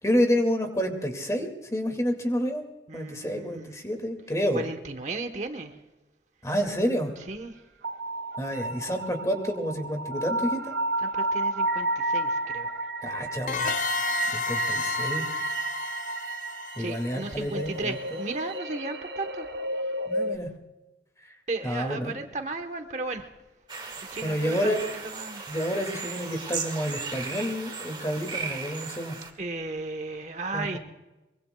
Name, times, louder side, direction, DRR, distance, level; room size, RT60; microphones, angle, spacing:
voice 1, 0.0-2.6 2.9-4.7 6.4-7.1 8.4-10.7 13.0-13.7 14.2-15.3 16.8-18.0 20.1-20.5 21.6-22.1 24.2-24.8 25.5-29.2 30.5-30.8, equal, 20° left, 5 dB, 2.2 m, -29 dB
voice 2, 2.9-3.8 4.5-5.8 7.2-7.6 11.0-12.8 16.8-19.5 19.8-19.9 21.5-23.3 23.8-25.5 29.4-30.8, right 3 dB, 40° right, 7 dB, 1.1 m, -35 dB
sound 1, 7.8-20.4, right 2 dB, 80° right, 1.1 m, -31 dB
sound 2, 13.5-18.0, left 6 dB, 45° left, 0.5 m, -32 dB
sound 3, 23.7-29.3, right 4 dB, 25° right, 2.1 m, -36 dB
23.5 x 23.0 x 2.3 m, 1.1 s
head